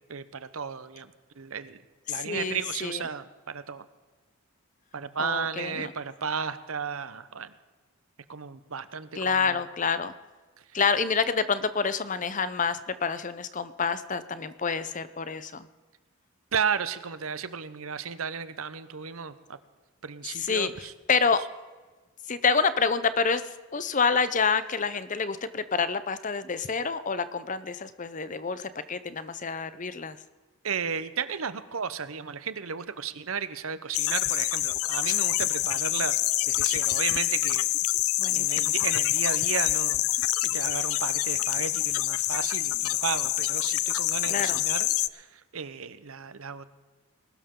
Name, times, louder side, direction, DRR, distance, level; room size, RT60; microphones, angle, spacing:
voice 1, 0.1-1.8 2.1-3.8 4.9-7.5 8.3-9.6 16.5-19.6 20.0-20.9 30.6-36.1 36.5-37.7 38.3-44.9 45.1-46.6, right 6 dB, 70° right, 14 dB, 0.8 m, -34 dB
voice 2, 2.1-3.0 5.2-5.9 9.2-10.1 10.7-15.7 20.3-20.7 21.1-21.5 22.3-23.4 23.7-30.2 38.2-38.7 44.3-44.6, left 5 dB, 35° left, 14 dB, 0.6 m, -28 dB
sound 1, 33.9-45.1, left 17 dB, 75° left, 0.4 m, -26 dB
21.0 x 12.5 x 3.8 m, 1.3 s
head